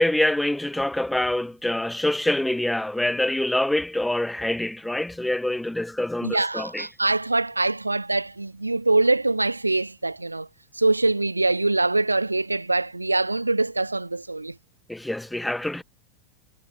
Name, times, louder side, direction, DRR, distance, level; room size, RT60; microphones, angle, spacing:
voice 1, 0.0-6.9 14.9-15.8, left 1 dB, 5° left, 4.4 m, -25 dB
voice 2, 6.2-10.5 10.8-14.5, right 2 dB, 85° right, 7.5 m, -23 dB
figure-of-eight pair, 90°, 0 cm